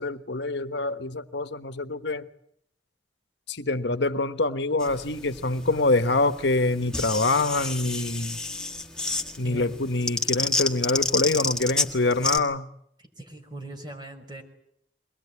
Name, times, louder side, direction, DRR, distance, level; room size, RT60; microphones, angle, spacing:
voice 1, 0.0-2.3 3.5-8.4 9.4-12.7, left 2 dB, 75° left, 11 dB, 1.3 m, -25 dB
sound 1, 4.8-12.4, left 2 dB, 5° left, 1.7 m, -30 dB
voice 2, 9.4-9.8 13.0-14.4, right 2 dB, 25° right, 5 dB, 5.7 m, -40 dB
23.5 x 20.0 x 9.8 m, 0.72 s
head